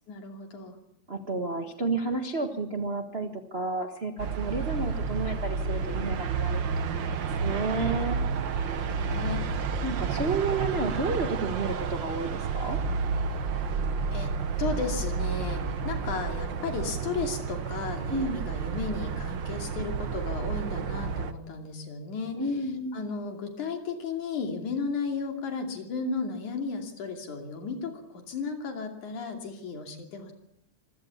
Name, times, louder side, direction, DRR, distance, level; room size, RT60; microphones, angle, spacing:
voice 1, 0.1-0.8 8.7-9.5 14.1-14.3 14.6-22.4 22.9-30.3, left 4 dB, 70° left, 4 dB, 4.2 m, -34 dB
voice 2, 1.1-8.2 9.8-12.8 18.1-18.4 22.3-23.0, right 3 dB, 40° right, 5 dB, 0.8 m, -31 dB
sound 1, 4.2-21.3, right 5 dB, 65° right, 1.2 m, -30 dB
25.0 x 17.0 x 7.2 m, 0.77 s
omnidirectional pair, 3.6 m